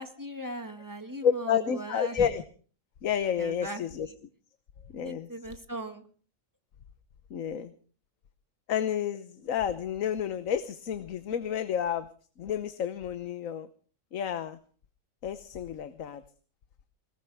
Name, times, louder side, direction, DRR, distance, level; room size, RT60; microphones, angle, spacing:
voice 1, 0.0-2.2 3.4-3.8 4.1-4.2 5.0-6.0, right 1 dB, 15° right, 6 dB, 1.8 m, -39 dB
voice 2, 1.2-2.4 3.0-4.1 4.9-5.3 7.3-7.7 8.7-12.1 12.4-13.7 14.1-14.6 15.2-16.2, left 8 dB, 75° left, 11 dB, 1.3 m, -30 dB
22.0 x 18.5 x 3.5 m, 0.42 s
omnidirectional pair, 1.4 m